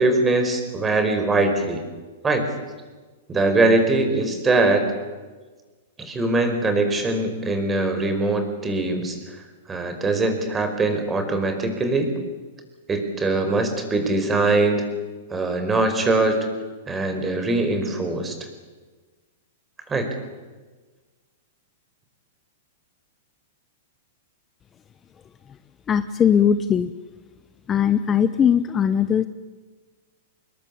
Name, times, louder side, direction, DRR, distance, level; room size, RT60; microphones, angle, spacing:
voice 1, 0.0-1.8 2.2-2.5 3.3-4.9 6.0-9.2 9.7-12.1 12.9-14.9 15.3-16.5 16.9-18.3 19.9-20.1, right 2 dB, 15° right, 7 dB, 4.9 m, -22 dB
voice 2, 25.9-26.9 27.7-29.3, left 8 dB, 20° left, 12 dB, 0.9 m, -19 dB
26.5 x 21.0 x 8.7 m, 1.3 s
hypercardioid pair, 140°, 0 cm